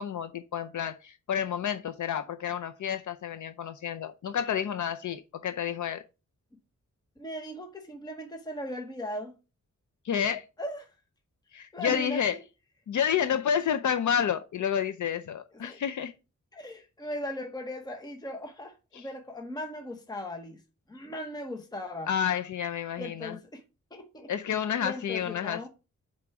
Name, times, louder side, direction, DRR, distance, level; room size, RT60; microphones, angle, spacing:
voice 1, 0.0-6.0 10.0-10.4 11.5-12.4 12.9-16.1 18.9-19.1 22.1-23.3 24.3-25.7, left 8 dB, 75° left, 0.6 m, -30 dB
voice 2, 7.2-9.3 10.6-10.9 11.7-12.4 15.5-15.8 16.5-20.6 20.9-22.1 23.0-23.6 23.9-24.3 24.8-25.7, left 1 dB, 15° left, 0.9 m, -38 dB
6.0 x 4.5 x 5.8 m
wide cardioid pair, 150°, 31 cm